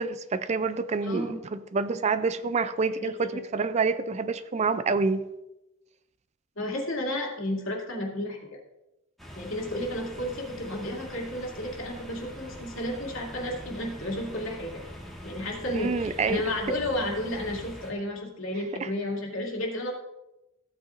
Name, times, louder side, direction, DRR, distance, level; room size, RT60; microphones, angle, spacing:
voice 1, 0.0-5.2 15.7-16.4 18.8-18.9, right 4 dB, 35° right, 0.4 m, -27 dB
voice 2, 1.0-1.4 2.8-3.4 6.6-8.6 9.4-14.8 15.2-19.9, left 1 dB, 70° left, 2.5 m, -32 dB
sound 1, 9.2-17.9, equal, ahead, 1.6 m, -43 dB
15.0 x 8.4 x 2.5 m
head